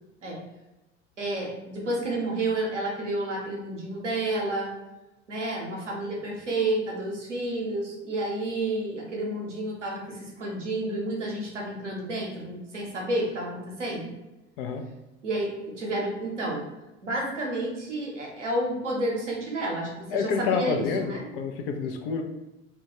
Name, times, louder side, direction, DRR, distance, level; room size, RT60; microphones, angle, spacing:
voice 1, 1.2-4.7 5.3-14.1 15.2-16.6 17.0-21.3, right 1 dB, 85° right, -2 dB, 0.7 m, -30 dB
voice 2, 20.1-22.2, left 5 dB, 55° left, 4 dB, 0.5 m, -28 dB
2.2 x 2.2 x 2.9 m, 0.99 s
figure-of-eight pair, 70°, 35 cm